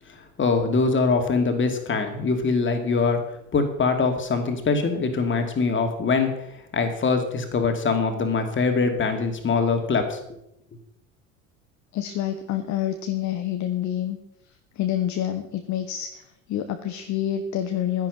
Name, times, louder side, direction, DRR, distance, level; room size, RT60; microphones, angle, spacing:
voice 1, 0.4-3.2 3.5-6.3 6.7-10.2, left 4 dB, 30° left, 5 dB, 2.6 m, -23 dB
voice 2, 11.9-14.2 14.4-18.1, left 11 dB, 45° left, 8 dB, 1.3 m, -28 dB
11.0 x 10.5 x 5.4 m, 0.81 s
figure-of-eight pair, 70°, 40 cm